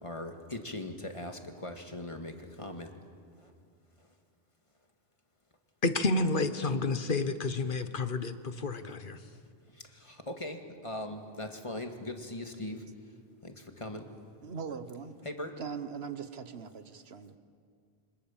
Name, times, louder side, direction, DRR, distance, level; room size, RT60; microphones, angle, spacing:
voice 1, 0.0-2.9 10.0-10.6 10.8-12.8 13.4-14.1 15.2-15.5, left 1 dB, 30° left, 5 dB, 2.0 m, -40 dB
voice 2, 5.8-9.2, left 3 dB, 55° left, 11 dB, 1.2 m, -30 dB
voice 3, 14.4-15.2 15.6-17.4, right 6 dB, 70° right, 11 dB, 1.4 m, -40 dB
26.5 x 25.0 x 7.3 m, 2.2 s
omnidirectional pair, 1.1 m